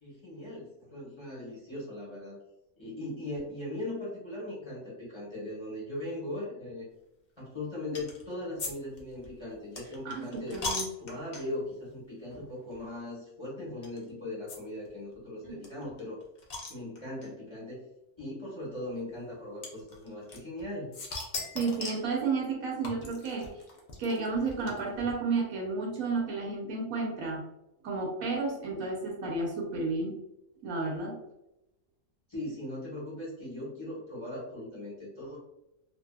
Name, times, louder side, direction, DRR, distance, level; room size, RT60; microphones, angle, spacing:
voice 1, 0.0-2.4 2.8-6.9 7.4-10.6 11.0-16.2 16.7-17.8 18.2-20.9 32.3-35.4, left 1 dB, 25° left, -6 dB, 0.8 m, -39 dB
sound 1, 7.9-8.2 8.6-8.7 9.0-11.7 12.3-12.5 12.7-12.8 13.8-14.0 14.5-14.6 14.9-15.0 15.1-15.2 15.6-17.3 18.2-18.3 19.6-20.6 20.9-22.1 22.8-25.1, left 3 dB, 70° left, 0.4 m, -39 dB
voice 2, 10.0-10.9 15.4-15.6 21.5-23.5 24.0-27.4 27.8-30.2 30.6-31.2, right 3 dB, 70° right, -1 dB, 1.1 m, -32 dB
2.7 x 2.6 x 2.2 m, 0.87 s
omnidirectional pair, 1.5 m